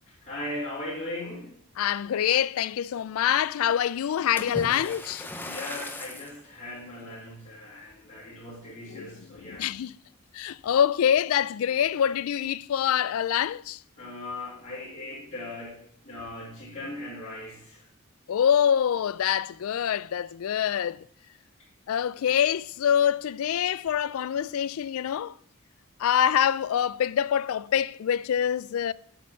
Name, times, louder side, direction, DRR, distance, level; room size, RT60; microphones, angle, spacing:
voice 1, 0.2-1.5 5.4-9.7 14.0-15.8 16.0-17.9, left 1 dB, 30° left, 3.5 m, -38 dB
voice 2, 1.8-5.3 8.9-9.9 10.3-13.8 18.3-21.1 21.9-25.3 26.0-28.9, left 9 dB, 75° left, 0.3 m, -25 dB
Splash splatter, 4.4-6.4 7.1-7.3 7.9-8.0, left 1 dB, 10° left, 0.7 m, -38 dB
8.2 x 4.5 x 7.3 m
head